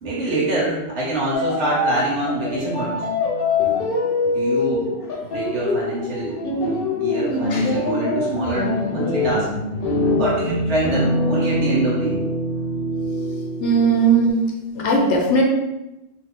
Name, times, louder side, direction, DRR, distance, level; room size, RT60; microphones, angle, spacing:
voice 1, 0.0-3.0 3.6-3.8 4.2-4.9 5.2-9.5 10.2-12.2, right 1 dB, 80° right, -6 dB, 1.2 m, -25 dB
sound 1, 1.3-14.3, left 2 dB, 55° left, 0.8 m, -24 dB
voice 2, 13.6-15.4, right 3 dB, 85° left, 0 dB, 1.0 m, -18 dB
2.7 x 2.4 x 3.6 m, 0.95 s
omnidirectional pair, 1.2 m